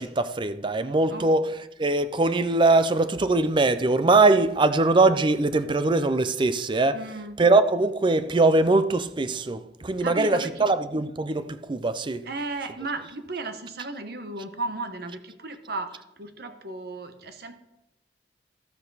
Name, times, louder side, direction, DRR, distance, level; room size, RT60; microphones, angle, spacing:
voice 1, 0.0-7.0 7.4-12.3, right 3 dB, 25° right, 0.5 m, -22 dB
voice 2, 6.9-7.4 10.0-10.7 12.2-17.6, right 2 dB, 60° right, 1.1 m, -35 dB
12.5 x 7.9 x 4.0 m
head